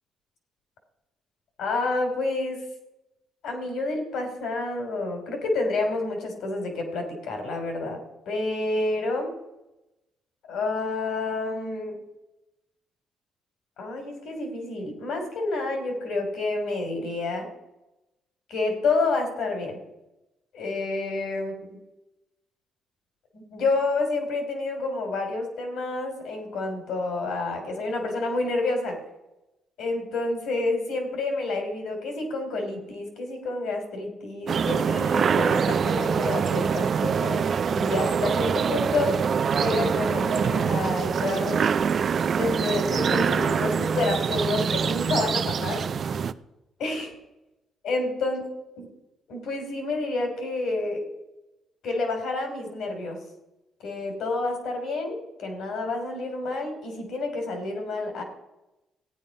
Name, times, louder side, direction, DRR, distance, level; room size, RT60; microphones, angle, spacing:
voice 1, 1.6-2.6 3.4-9.3 10.5-12.0 13.8-17.5 18.5-19.8 20.5-21.8 23.3-29.0 29.8-39.2 39.5-41.6 42.3-45.8 46.8-47.1 47.8-48.4 48.8-48.9 49.3-51.0 51.8-53.2 53.8-58.2, left 3 dB, 75° left, 4 dB, 3.4 m, -29 dB
sound 1, 34.5-46.3, right 6 dB, 50° right, 0.5 m, -24 dB
15.0 x 9.2 x 5.4 m, 0.97 s
cardioid pair, 90°, 0 cm